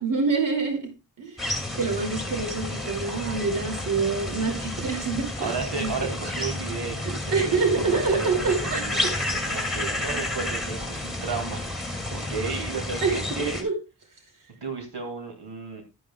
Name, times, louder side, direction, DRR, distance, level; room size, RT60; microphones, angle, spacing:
voice 1, 0.0-0.9 1.2-6.1 7.3-9.1 13.0-13.7, right 4 dB, 55° right, 3 dB, 2.8 m, -26 dB
sound 1, 1.4-13.6, left 1 dB, ahead, 2.4 m, -31 dB
voice 2, 3.0-3.4 4.7-13.6 14.6-15.8, right 5 dB, 85° right, 3 dB, 2.6 m, -34 dB
11.0 x 11.0 x 2.3 m, 0.26 s
wide cardioid pair, 150°, 38 cm